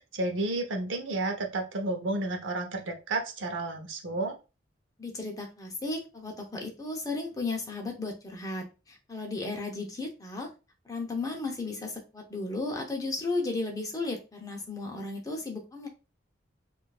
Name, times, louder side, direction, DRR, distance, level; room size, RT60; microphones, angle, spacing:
voice 1, 0.0-4.3, right 2 dB, 75° right, 3 dB, 0.7 m, -31 dB
voice 2, 5.0-10.5 10.9-15.9, left 3 dB, 20° left, 1 dB, 0.6 m, -34 dB
3.7 x 2.4 x 2.3 m, 0.30 s
head